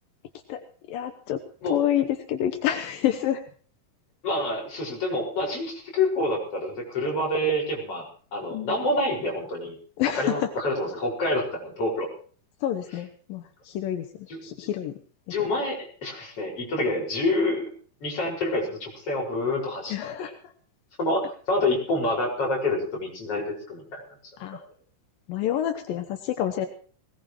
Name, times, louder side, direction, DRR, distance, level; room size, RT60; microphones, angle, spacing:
voice 1, 0.5-3.4 8.5-8.8 10.0-10.5 12.6-15.0 15.4-15.5 19.9-20.5 24.4-24.6 25.3-26.7, left 11 dB, 85° left, 6 dB, 2.8 m, -28 dB
voice 2, 4.2-8.1 8.3-9.8 10.2-12.1 14.3-14.4 15.3-17.7 18.0-19.9 21.0-24.0, left 1 dB, 40° left, -2 dB, 6.6 m, -27 dB
20.5 x 19.0 x 3.1 m, 0.43 s
omnidirectional pair, 4.0 m